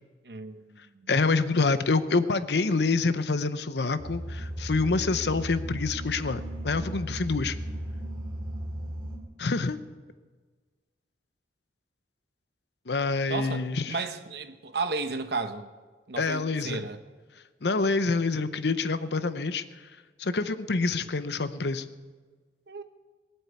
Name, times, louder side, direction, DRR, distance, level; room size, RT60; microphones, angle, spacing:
voice 1, 0.2-1.1 13.3-15.7 16.1-17.0 22.7-22.8, right 4 dB, 65° right, 9 dB, 0.9 m, -34 dB
voice 2, 1.1-7.6 9.4-9.8 12.9-14.0 16.2-16.8 17.6-19.6 20.2-21.8, left 3 dB, 70° left, 12 dB, 0.8 m, -26 dB
sound 1, 4.0-9.2, right 1 dB, 30° right, 2.3 m, -36 dB
19.0 x 8.9 x 8.2 m, 1.4 s
head